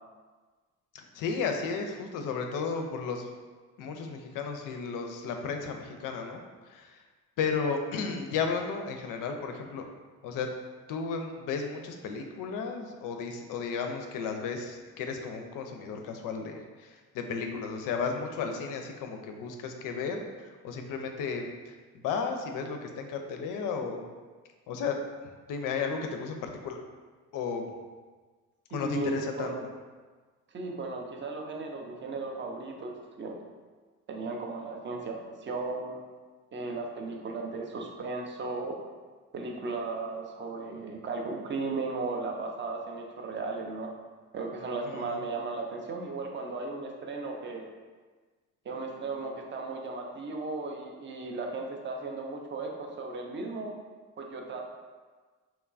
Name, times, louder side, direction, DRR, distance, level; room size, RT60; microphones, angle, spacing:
voice 1, 0.9-3.3 3.8-7.0 7.4-9.8 10.2-10.5 10.9-24.0 24.7-26.8 27.3-27.6 28.7-29.6 44.9-45.2, left 5 dB, 50° left, 4 dB, 0.5 m, -34 dB
voice 2, 28.7-29.7 30.5-33.4 34.1-36.0 36.5-38.9 39.3-43.9 44.3-47.7 48.6-53.7 54.2-54.6, right 3 dB, 30° right, 1 dB, 0.5 m, -36 dB
2.9 x 2.2 x 2.4 m, 1.4 s
hypercardioid pair, 50°, 41 cm